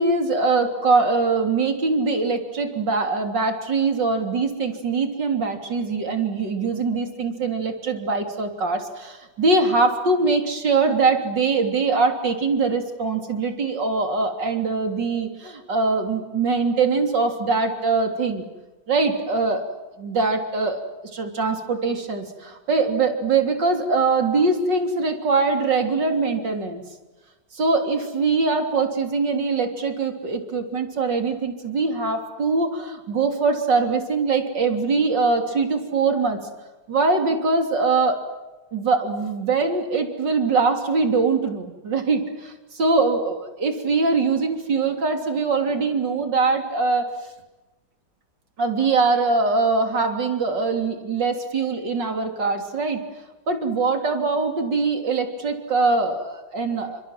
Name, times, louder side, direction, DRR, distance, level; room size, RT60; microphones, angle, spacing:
voice 1, 0.0-18.4 18.9-19.7 20.0-20.8 21.1-26.8 27.5-36.4 36.9-38.2 38.7-42.5 42.8-47.1 48.6-53.0 53.5-57.0, right 4 dB, 85° right, 5 dB, 4.0 m, -22 dB
30.0 x 26.0 x 7.6 m, 1.1 s
omnidirectional pair, 1.9 m